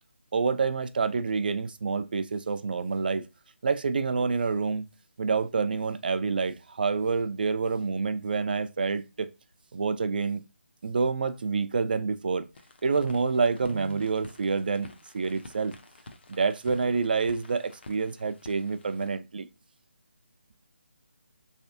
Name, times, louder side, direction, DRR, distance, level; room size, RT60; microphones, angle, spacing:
voice 1, 0.3-3.2 3.6-4.8 5.2-9.3 9.7-10.4 10.8-12.5 12.8-14.9 15.1-15.7 16.3-19.5, right 4 dB, 45° right, 0.4 m, -27 dB
sound 1, 12.5-19.1, left 2 dB, 55° left, 0.7 m, -50 dB
3.4 x 3.2 x 2.7 m
figure-of-eight pair, 165°, 7 cm